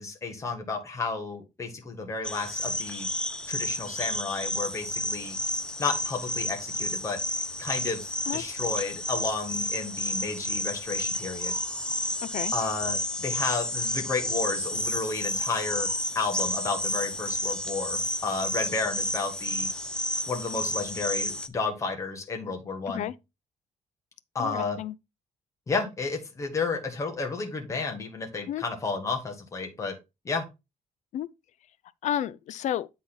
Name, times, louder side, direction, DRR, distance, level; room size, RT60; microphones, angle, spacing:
voice 1, 0.0-3.1 3.5-5.3 5.8-7.2 7.6-11.5 12.5-15.9 16.1-19.7 20.3-23.1 24.3-24.8 25.7-29.9 30.2-30.5, left 4 dB, 20° left, 1.3 m, -32 dB
sound 1, 2.2-21.5, left 1 dB, 5° left, 0.4 m, -31 dB
voice 2, 12.2-12.5 22.9-23.1 24.4-24.9 28.5-28.6 31.1-31.3 32.0-32.9, left 11 dB, 60° left, 0.5 m, -31 dB
8.2 x 4.0 x 3.9 m
cardioid pair, 170°, 14 cm